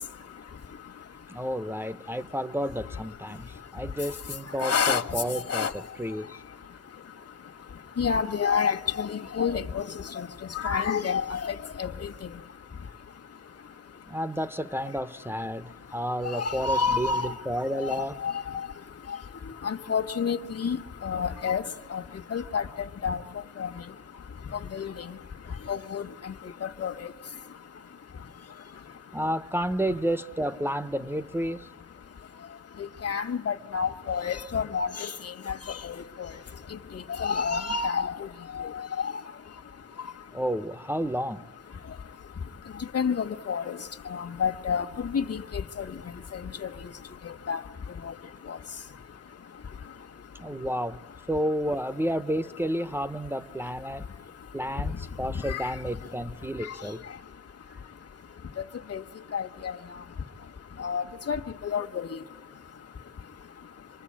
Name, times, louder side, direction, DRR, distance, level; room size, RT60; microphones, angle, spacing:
voice 1, 1.3-6.4 14.1-18.2 29.1-31.7 40.3-41.4 50.4-51.0 51.3-54.1 54.5-57.0, equal, 5° right, 8 dB, 0.7 m, -31 dB
voice 2, 4.6-5.0 5.5-5.7 8.0-9.8 10.2-10.3 10.5-12.1 16.4-17.3 18.2-18.3 19.6-20.8 21.0-21.6 21.9-22.0 22.3-22.6 23.0-23.2 23.6-23.7 24.7-24.9 25.7-26.0 26.8-26.9 33.0-35.1 35.8-35.9 36.9-38.1 38.6-38.7 39.0-39.1 42.9-43.8 44.1-44.8 45.1-45.4 45.8-45.9 46.3-46.7 47.5-47.6 48.5-48.6 55.5-55.6 58.9-59.0 59.3-59.7 60.8-62.1, left 6 dB, 50° left, 6 dB, 1.5 m, -28 dB
26.5 x 23.0 x 8.7 m, 1.3 s
cardioid pair, 70°, 32 cm